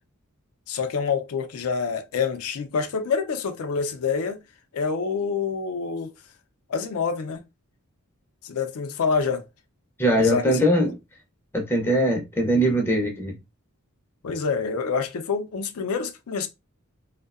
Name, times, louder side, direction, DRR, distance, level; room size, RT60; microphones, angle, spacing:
voice 1, 0.7-4.4 4.7-6.1 6.7-7.4 8.4-9.4 10.2-10.6 14.2-16.5, left 5 dB, 75° left, 0.4 m, -27 dB
voice 2, 10.0-11.0 11.5-13.3, equal, 10° left, 0.4 m, -21 dB
2.6 x 2.1 x 2.3 m
head